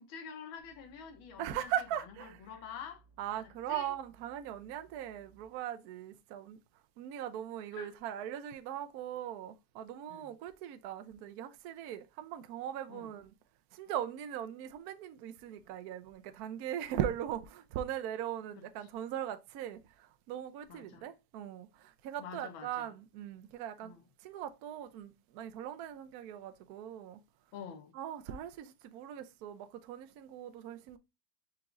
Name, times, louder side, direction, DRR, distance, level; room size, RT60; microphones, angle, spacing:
voice 1, 0.0-1.7 2.2-3.0 3.4-3.9 7.7-7.9 10.1-10.3 12.9-13.1 20.7-21.1 22.2-22.9 23.8-24.0 27.5-27.9, left 7 dB, 90° left, 1.7 m, -47 dB
sound 1, 0.6-5.5, right 4 dB, 50° left, 0.9 m, -64 dB
voice 2, 1.4-2.4 3.2-6.6 7.0-13.3 13.7-23.9 24.2-27.2 27.9-31.0, right 10 dB, 75° right, 0.9 m, -40 dB
4.7 x 3.0 x 3.7 m
omnidirectional pair, 2.1 m